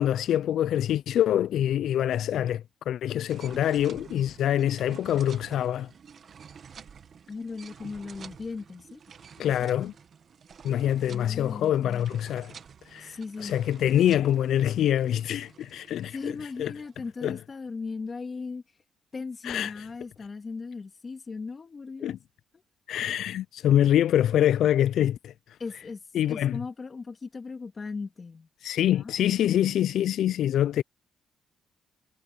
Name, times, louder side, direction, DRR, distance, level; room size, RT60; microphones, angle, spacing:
voice 1, 0.0-5.9 9.4-9.9 10.6-12.5 12.9-16.3 16.6-16.7 17.2-17.4 19.4-19.9 22.0-22.2 22.9-25.3 26.1-26.6 28.6-30.8, left 11 dB, 70° left, 0.3 m, -25 dB
sound 1, 3.3-17.3, right 7 dB, 45° right, 1.4 m, -50 dB
voice 2, 7.3-9.0 9.6-9.7 11.0-12.1 13.0-13.5 16.1-18.6 19.1-22.2 22.5-22.6 25.6-26.0 26.3-28.5 28.9-29.1, left 4 dB, 30° left, 2.7 m, -38 dB
cardioid pair, 120°, 0 cm